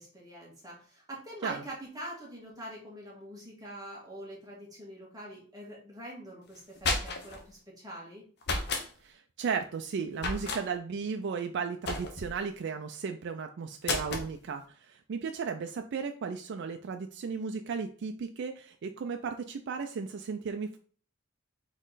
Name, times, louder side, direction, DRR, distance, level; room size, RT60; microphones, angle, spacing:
voice 1, 0.0-8.2, right 1 dB, 20° right, -4 dB, 1.6 m, -44 dB
sound 1, 6.5-7.4 8.4-8.9 10.2-10.6 11.8-12.4 13.8-14.3, left 3 dB, 55° left, 0.8 m, -32 dB
voice 2, 9.0-20.8, right 5 dB, 60° right, 6 dB, 0.4 m, -35 dB
4.1 x 3.1 x 3.9 m, 0.44 s
head